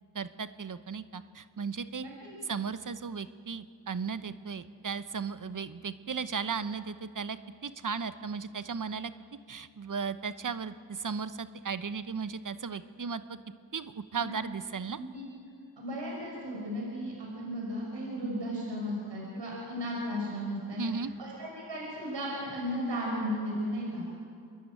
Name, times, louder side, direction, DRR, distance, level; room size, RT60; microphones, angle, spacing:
voice 1, 0.1-2.0 2.4-9.1 9.5-13.4 13.7-15.0 20.8-21.1, right 5 dB, 45° right, 13 dB, 1.0 m, -36 dB
voice 2, 2.0-2.3 14.2-14.3 14.9-15.2 15.8-20.8 21.2-24.0, equal, 75° right, -3 dB, 5.9 m, -35 dB
27.0 x 11.0 x 9.2 m, 2.3 s
cardioid pair, 50°, 43 cm